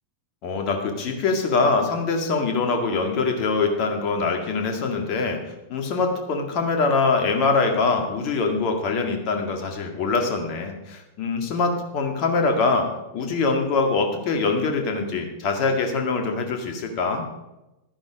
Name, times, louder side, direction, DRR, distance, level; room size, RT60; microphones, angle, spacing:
voice 1, 0.4-5.4 5.7-12.9 13.1-17.3, left 4 dB, 40° left, 3 dB, 2.0 m, -23 dB
11.5 x 10.0 x 5.1 m, 0.96 s
figure-of-eight pair, 90°, 0 cm